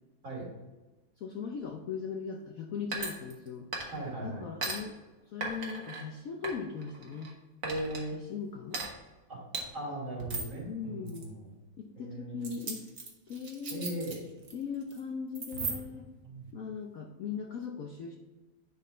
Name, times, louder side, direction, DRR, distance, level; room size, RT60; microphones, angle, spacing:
voice 1, 1.2-3.7 4.2-5.0 5.3-7.3 8.1-8.9 10.7-11.3 11.8-12.9 13.3-13.9 14.5-16.1 16.5-18.2, left 6 dB, 70° left, 3 dB, 0.8 m, -39 dB
sound 1, 2.9-3.5 3.7-4.1 4.6-4.8 5.4-6.0 6.4-7.3 7.6-8.0 8.7-8.9 9.5-9.6 10.2-10.6 11.1-11.2 12.4-14.5 14.8-15.0 15.3-16.0, right 3 dB, 45° right, 1.5 m, -37 dB
voice 2, 3.9-4.5 7.6-8.2 9.3-9.4 9.7-11.5 12.0-12.6 13.7-14.2 16.2-16.4, right 1 dB, 80° right, -4 dB, 3.7 m, -38 dB
10.0 x 4.1 x 4.2 m, 1.2 s
omnidirectional pair, 2.2 m